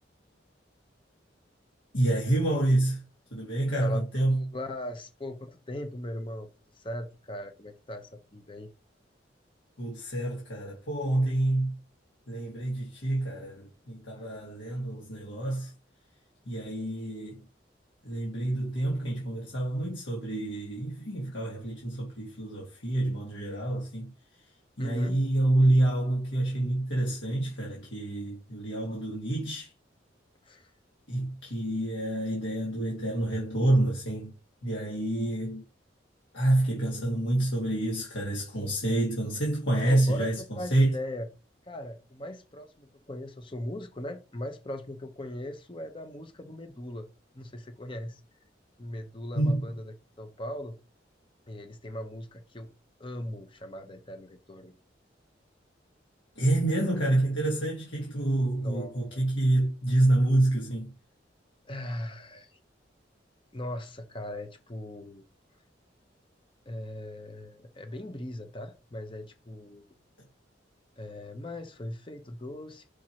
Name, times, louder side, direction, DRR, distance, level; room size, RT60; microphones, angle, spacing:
voice 1, 1.9-3.0 3.3-4.4 9.8-11.8 12.3-15.7 16.5-17.4 18.0-24.1 24.8-29.7 31.1-34.3 34.6-35.6 36.3-40.9 49.4-49.6 56.4-60.9, right 1 dB, 80° left, 1.9 m, -27 dB
voice 2, 3.8-6.5 6.7-8.7 14.1-14.4 24.8-25.2 30.4-30.7 39.8-41.3 41.6-47.1 47.3-48.2 48.8-50.8 51.5-52.7 53.0-54.7 58.6-59.2 61.6-62.6 63.5-65.2 66.7-69.8 71.0-72.9, left 1 dB, 30° left, 0.9 m, -39 dB
4.9 x 4.6 x 4.4 m
head